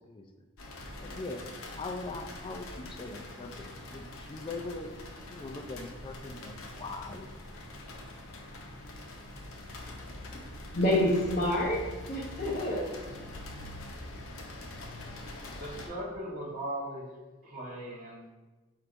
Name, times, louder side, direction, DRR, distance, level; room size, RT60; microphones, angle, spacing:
sound 1, 0.6-15.9, left 1 dB, 80° left, 0.7 m, -44 dB
voice 1, 1.0-1.4 1.7-4.9 5.3-7.3, left 3 dB, 25° left, 4 dB, 0.3 m, -41 dB
voice 2, 10.7-12.9, left 1 dB, 40° left, -6 dB, 0.7 m, -28 dB
voice 3, 15.5-17.1 17.4-18.3, right 1 dB, 40° right, -6 dB, 1.2 m, -38 dB
4.5 x 4.5 x 2.6 m, 1.2 s
head